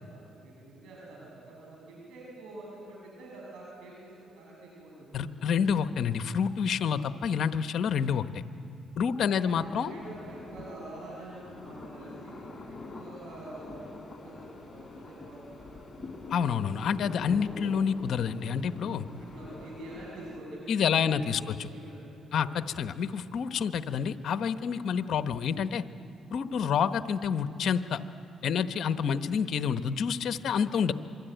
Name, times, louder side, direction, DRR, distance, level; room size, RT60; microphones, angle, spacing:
voice 1, 0.0-5.5 9.3-16.4 19.0-22.7 24.8-25.0, right 1 dB, 85° right, -3 dB, 7.4 m, -47 dB
voice 2, 5.1-8.4 9.0-9.9 16.3-19.1 20.7-21.4 22.3-25.8 26.3-28.0 28.4-30.9, left 7 dB, 65° left, 10 dB, 1.1 m, -28 dB
sound 1, 9.5-20.4, left 3 dB, 20° left, 4.3 m, -45 dB
27.0 x 23.5 x 9.2 m, 2.7 s
cardioid pair, 90°, 0 cm